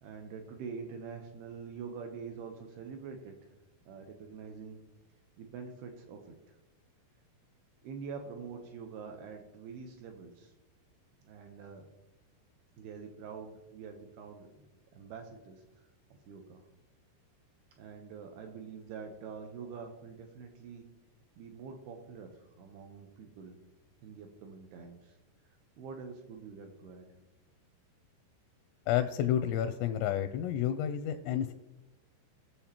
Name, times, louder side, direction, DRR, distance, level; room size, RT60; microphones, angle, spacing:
voice 1, 0.0-3.4 3.9-4.8 5.4-6.2 7.8-10.5 11.2-11.9 12.8-14.7 14.9-15.6 16.3-16.7 17.8-20.9 21.4-23.6 24.0-25.2 25.8-27.1, right 5 dB, 80° right, 4 dB, 2.4 m, -45 dB
voice 2, 28.9-31.5, left 10 dB, 85° left, 8 dB, 2.5 m, -30 dB
19.5 x 7.0 x 2.9 m, 1.0 s
omnidirectional pair, 5.4 m